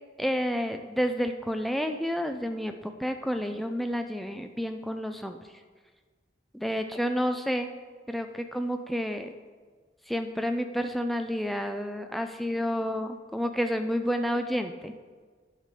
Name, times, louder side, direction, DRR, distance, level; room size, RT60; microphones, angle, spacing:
voice 1, 0.2-5.4 6.5-7.7 8.1-9.3 10.1-14.9, equal, ahead, 6 dB, 0.4 m, -30 dB
11.5 x 5.9 x 4.9 m, 1.5 s
head